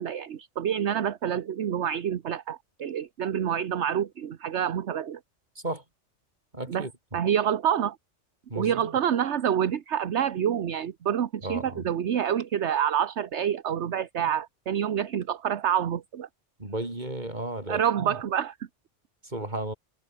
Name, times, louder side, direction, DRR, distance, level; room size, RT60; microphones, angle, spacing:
voice 1, 0.0-5.2 6.7-6.9 7.1-8.0 8.5-16.3 17.7-18.6, right 9 dB, 70° right, 1.2 m, -27 dB
voice 2, 6.5-6.9 8.5-8.9 11.4-11.8 16.6-18.2 19.2-19.7, right 1 dB, 40° right, 4.7 m, -34 dB
omnidirectional pair, 1.2 m